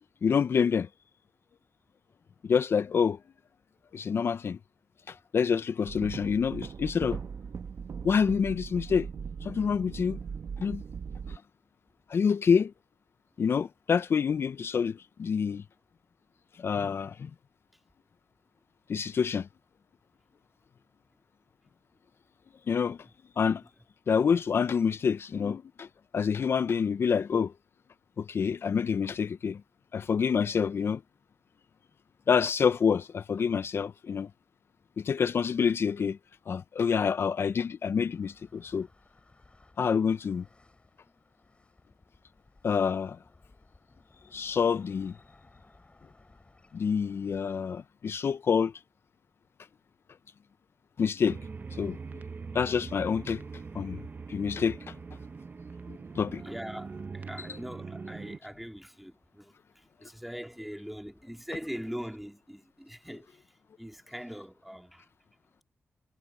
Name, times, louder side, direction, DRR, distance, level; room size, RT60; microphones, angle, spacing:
voice 1, 0.2-0.9 2.4-3.2 3.9-4.6 5.1-7.2 8.0-9.1 9.4-10.2 10.6-10.8 11.3-11.4 12.1-12.7 13.4-15.6 16.6-17.3 18.9-19.5 22.7-23.0 23.4-23.6 24.1-25.9 26.1-27.5 28.2-29.6 29.9-31.0 32.3-34.3 35.0-36.2 36.5-38.9 39.8-40.5 42.6-43.2 44.3-45.2 46.7-48.7 51.0-51.4 51.7-52.0 52.5-53.4 53.7-54.0 54.3-54.9 55.9-56.4 57.4-57.5, left 6 dB, 60° left, 0.4 m, -27 dB
sound 1, 5.9-11.4, right 6 dB, 65° right, 0.9 m, -39 dB
sound 2, 38.1-47.6, left 2 dB, 25° left, 3.8 m, -61 dB
sound 3, 51.3-58.4, right 4 dB, 40° right, 0.7 m, -42 dB
voice 2, 56.4-65.1, equal, 5° right, 2.0 m, -42 dB
wide cardioid pair, 90°, 5 cm